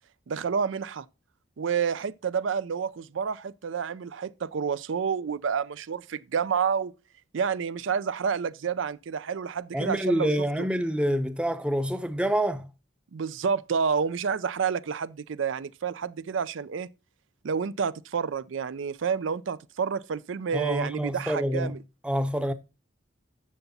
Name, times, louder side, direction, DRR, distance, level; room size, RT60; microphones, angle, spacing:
voice 1, 0.3-1.1 1.6-6.9 7.3-10.3 13.1-16.9 17.4-21.8, right 6 dB, 75° right, 0.4 m, -29 dB
voice 2, 9.7-12.7 20.5-21.7 22.0-22.5, equal, 5° right, 0.6 m, -27 dB
11.0 x 6.9 x 4.0 m
head